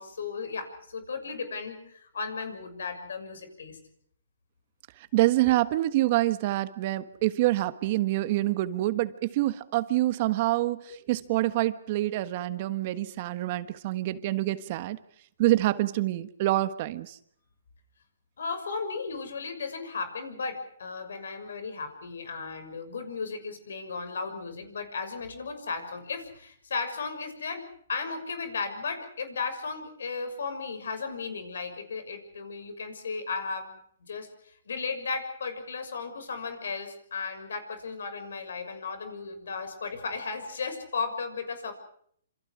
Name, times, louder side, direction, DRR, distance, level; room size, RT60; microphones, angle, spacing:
voice 1, 0.0-3.8 10.9-11.0 18.4-33.7 34.0-34.3 34.7-41.7, left 4 dB, 75° left, 10 dB, 6.3 m, -35 dB
voice 2, 5.1-15.0 15.4-17.2, right 16 dB, 40° right, 13 dB, 1.4 m, -26 dB
27.0 x 27.0 x 4.9 m, 0.64 s
hypercardioid pair, 145°, 0 cm